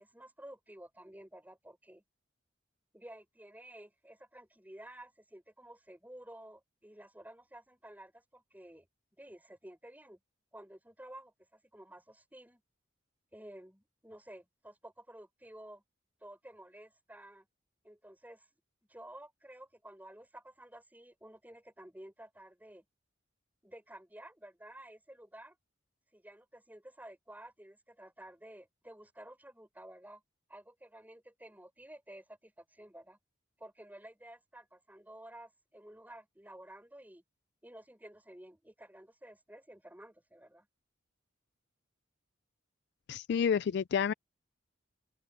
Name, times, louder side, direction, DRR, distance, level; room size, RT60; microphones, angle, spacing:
voice 1, 0.0-2.0 2.9-8.9 9.2-10.2 10.5-12.6 13.3-15.8 16.2-17.5 17.8-18.5 18.9-22.9 23.6-25.6 26.1-30.2 30.5-33.2 33.6-37.2 37.6-40.7, right 1 dB, 10° right, 5.4 m, -52 dB
voice 2, 43.1-44.1, left 7 dB, 55° left, 0.3 m, -29 dB
open air
head